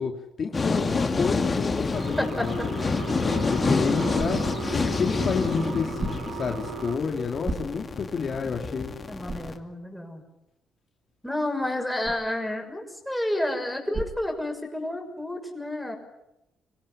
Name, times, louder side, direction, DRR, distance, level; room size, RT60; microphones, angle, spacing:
voice 1, 0.0-8.9, left 5 dB, 50° left, 4 dB, 2.6 m, -30 dB
sound 1, 0.5-9.6, left 4 dB, 30° left, 2.5 m, -28 dB
sound 2, 1.9-7.0, right 6 dB, 75° right, 4.3 m, -38 dB
voice 2, 2.2-2.7 9.1-10.2 11.2-16.0, left 1 dB, ahead, 2 dB, 6.6 m, -30 dB
sound 3, 8.8-15.0, right 2 dB, 35° right, 5.6 m, -41 dB
26.0 x 17.0 x 10.0 m, 0.88 s
cardioid pair, 90°, 0 cm